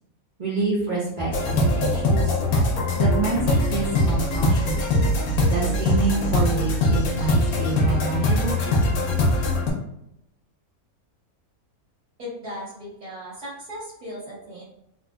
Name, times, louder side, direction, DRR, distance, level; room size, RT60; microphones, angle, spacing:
voice 1, 0.4-2.3 2.9-4.8 5.5-8.6, right 4 dB, 40° right, -7 dB, 0.9 m, -27 dB
sound 1, 1.3-9.7, left 1 dB, 85° left, 1.2 m, -22 dB
voice 2, 12.2-14.6, equal, 80° right, -7 dB, 1.9 m, -37 dB
3.8 x 2.5 x 2.3 m, 0.82 s
omnidirectional pair, 1.5 m